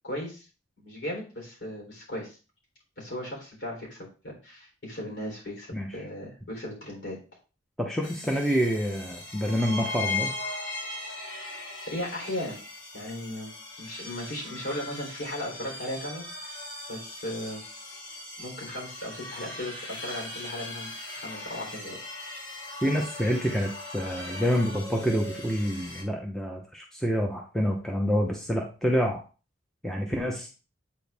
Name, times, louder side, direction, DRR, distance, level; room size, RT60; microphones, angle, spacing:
voice 1, 0.0-0.5 0.8-2.4 3.0-7.2 11.1-11.2 11.9-12.6 12.9-13.5 13.8-16.3 16.9-17.6 18.4-22.0, left 1 dB, 60° left, -1 dB, 3.8 m, -36 dB
voice 2, 7.8-10.3 22.8-29.2 29.8-30.5, equal, ahead, 0 dB, 0.8 m, -27 dB
sound 1, 8.0-26.0, left 2 dB, 75° left, 4.0 m, -39 dB
8.2 x 4.6 x 3.5 m, 0.34 s
head